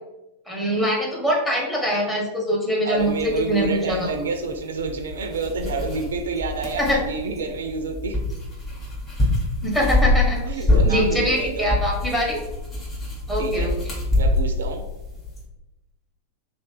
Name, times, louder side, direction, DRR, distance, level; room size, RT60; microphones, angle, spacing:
voice 1, 0.5-3.1 3.5-4.1 6.8-7.0 9.6-10.4 10.9-12.4 13.3-13.7, equal, 10° left, -3 dB, 1.0 m, -23 dB
voice 2, 2.8-8.2 10.5-11.7 13.4-13.7 14.2-14.9, right 4 dB, 65° right, 5 dB, 0.3 m, -29 dB
sound 1, 3.0-15.4, left 1 dB, 30° left, 1.4 m, -25 dB
3.1 x 2.8 x 3.2 m, 0.99 s
figure-of-eight pair, 90°, 0 cm